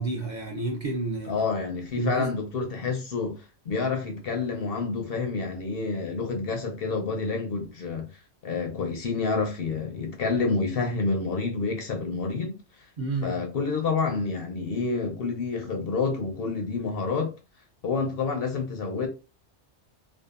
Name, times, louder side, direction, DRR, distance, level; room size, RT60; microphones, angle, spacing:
voice 1, 0.0-1.3 2.0-2.3 13.0-13.3, right 3 dB, 50° right, 0.6 m, -30 dB
voice 2, 1.3-8.1 8.4-12.5 13.2-17.3 17.8-19.1, left 4 dB, 60° left, 0.7 m, -28 dB
2.7 x 2.3 x 2.3 m
omnidirectional pair, 1.2 m